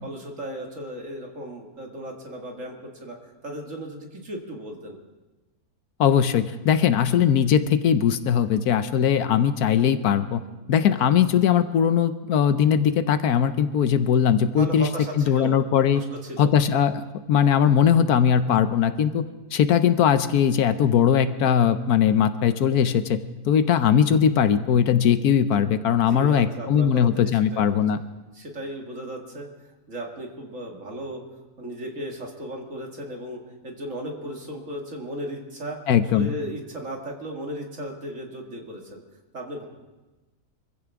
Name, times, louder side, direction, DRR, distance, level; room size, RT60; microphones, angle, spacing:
voice 1, 0.0-3.2 3.4-5.0 14.5-15.6 15.9-16.5 26.1-27.8 28.3-29.5 29.9-31.2 31.6-35.8 36.1-39.0 39.3-39.7, right 1 dB, 50° right, 1 dB, 2.4 m, -36 dB
voice 2, 6.0-10.4 10.7-14.9 15.2-16.0 16.4-17.0 17.3-19.3 19.5-23.2 23.5-28.0 35.9-36.3, left 8 dB, 75° left, 11 dB, 1.2 m, -20 dB
25.0 x 15.0 x 3.6 m, 1.1 s
omnidirectional pair, 1.7 m